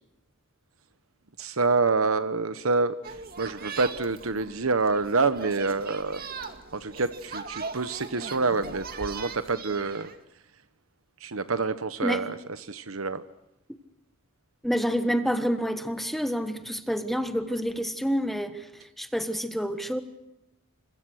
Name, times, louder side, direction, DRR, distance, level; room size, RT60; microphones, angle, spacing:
voice 1, 1.4-6.2 6.7-10.1 11.2-13.2, right 4 dB, 80° right, 11 dB, 1.1 m, -27 dB
sound 1, 3.0-10.2, right 4 dB, 45° right, 2.1 m, -40 dB
voice 2, 14.6-20.0, equal, ahead, 8 dB, 1.4 m, -28 dB
30.0 x 26.0 x 6.4 m, 0.90 s
head